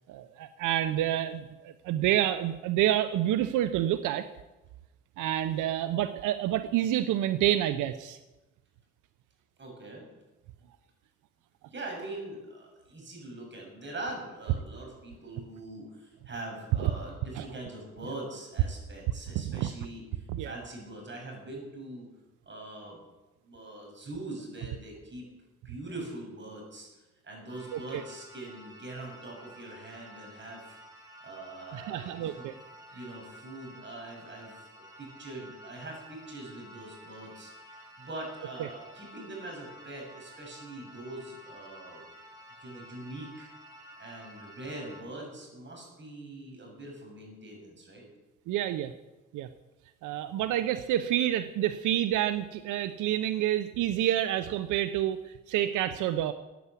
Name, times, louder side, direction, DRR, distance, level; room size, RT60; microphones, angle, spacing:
voice 1, 0.1-4.3 5.2-8.2 16.8-16.9 17.4-17.5 19.4-19.7 20.3-20.6 27.7-27.8 31.7-32.5 38.6-38.7 48.5-48.9 49.3-49.5 50.0-56.3, right 12 dB, 90° right, 12 dB, 0.7 m, -28 dB
voice 2, 9.6-10.1 11.7-22.1 22.5-23.0 23.4-25.2 25.6-30.8 31.2-32.5 32.9-42.0 42.6-43.5 44.0-48.0, right 2 dB, 40° right, 0 dB, 7.3 m, -43 dB
sound 1, 27.5-45.0, equal, 10° right, 4.7 m, -51 dB
15.5 x 9.5 x 8.4 m, 1.1 s
cardioid pair, 90°, 30 cm